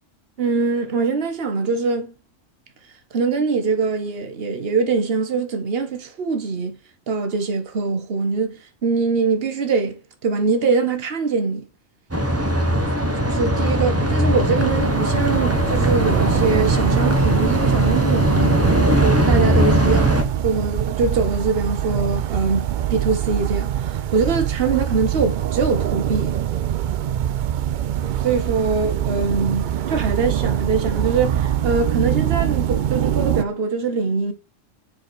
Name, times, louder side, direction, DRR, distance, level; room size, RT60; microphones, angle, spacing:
voice 1, 0.4-2.1 3.1-6.8 7.1-11.7 13.3-18.6 19.0-20.2 20.4-26.3 28.2-34.3, right 4 dB, 50° right, 1.4 m, -23 dB
sound 1, 12.1-20.2, right 1 dB, 15° right, 0.9 m, -19 dB
sound 2, 14.1-33.4, right 11 dB, 70° right, 0.4 m, -24 dB
5.1 x 4.8 x 6.1 m
omnidirectional pair, 1.3 m